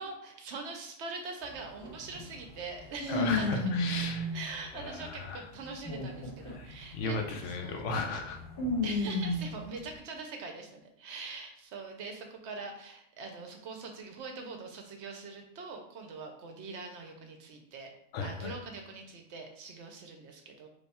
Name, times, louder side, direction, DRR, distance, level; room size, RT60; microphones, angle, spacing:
voice 1, 0.0-3.7 4.3-7.8 8.8-17.9 18.2-20.7, right 4 dB, 65° right, 3 dB, 0.8 m, -43 dB
sound 1, 1.4-1.5 1.8-5.1 5.6-9.7, left 1 dB, 55° left, 1.5 m, -33 dB
voice 2, 3.1-4.3 4.7-5.4 6.5-6.7 6.9-8.4 18.1-18.6, left 3 dB, 70° left, 3 dB, 0.9 m, -35 dB
3.3 x 2.2 x 4.1 m, 0.74 s
omnidirectional pair, 1.3 m